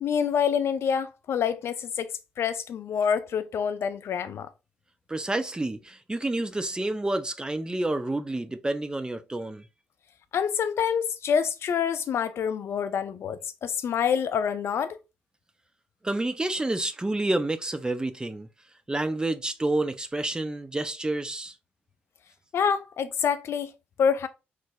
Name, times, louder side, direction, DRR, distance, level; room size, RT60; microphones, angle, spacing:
voice 1, 0.0-4.5 10.3-15.0 22.5-23.7 24.0-24.3, left 7 dB, 50° left, 0.4 m, -27 dB
voice 2, 5.1-9.6 16.0-18.5 18.9-21.5, right 2 dB, 15° right, 0.4 m, -29 dB
3.2 x 2.1 x 3.3 m
figure-of-eight pair, 40°, 6 cm